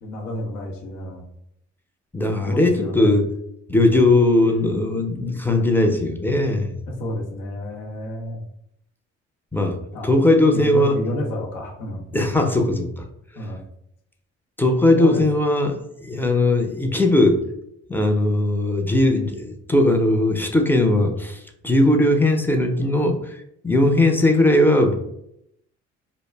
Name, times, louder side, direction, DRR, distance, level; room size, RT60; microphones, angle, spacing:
voice 1, 0.0-1.2 2.5-3.1 6.9-8.4 9.9-10.1 10.5-12.3 13.4-13.6 15.0-15.2, left 1 dB, 85° left, 1 dB, 0.7 m, -30 dB
voice 2, 2.1-3.3 3.7-6.7 9.5-9.8 10.0-11.0 12.1-13.0 14.6-17.5 17.9-23.4 23.6-24.9, left 1 dB, 5° left, 4 dB, 0.5 m, -19 dB
2.4 x 2.0 x 3.2 m, 0.76 s
supercardioid pair, 65°, 30 cm